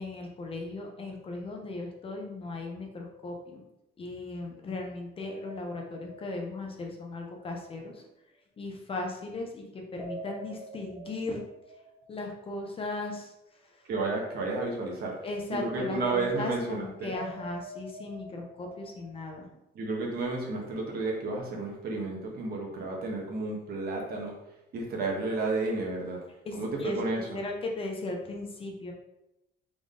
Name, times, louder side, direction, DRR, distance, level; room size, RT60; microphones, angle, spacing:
voice 1, 0.0-3.7 4.0-8.0 8.6-11.4 12.1-13.3 13.6-13.8 15.2-19.5 26.5-28.9, left 2 dB, 30° left, 1 dB, 0.6 m, -37 dB
sound 1, 5.2-7.3 9.9-12.8 17.1-19.3, right 1 dB, 10° right, 1.0 m, -46 dB
voice 2, 13.8-15.1 15.5-17.1 19.7-24.3 24.7-26.2 26.5-27.4, right 3 dB, 50° right, -1 dB, 1.2 m, -32 dB
3.8 x 3.7 x 3.7 m, 0.89 s
cardioid pair, 170°, 20 cm